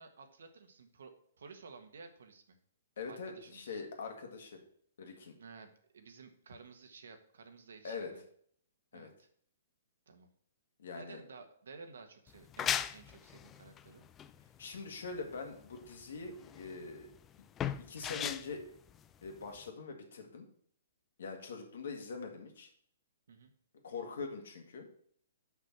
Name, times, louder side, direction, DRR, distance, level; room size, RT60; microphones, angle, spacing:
voice 1, 0.0-2.6 3.1-3.8 5.4-8.2 8.9-9.3 10.1-10.3 10.9-14.0 23.3-23.5, right 4 dB, 80° right, 6 dB, 1.4 m, -54 dB
voice 2, 3.0-4.6 5.0-5.4 7.8-8.1 8.9-9.1 10.8-11.2 14.6-17.1 17.8-18.6 19.2-20.5 21.2-22.7 23.8-24.9, left 4 dB, 70° left, 4 dB, 2.0 m, -43 dB
sound 1, 12.3-19.7, left 9 dB, 20° left, 0.3 m, -39 dB
6.2 x 5.9 x 6.0 m, 0.62 s
hypercardioid pair, 140°, 0 cm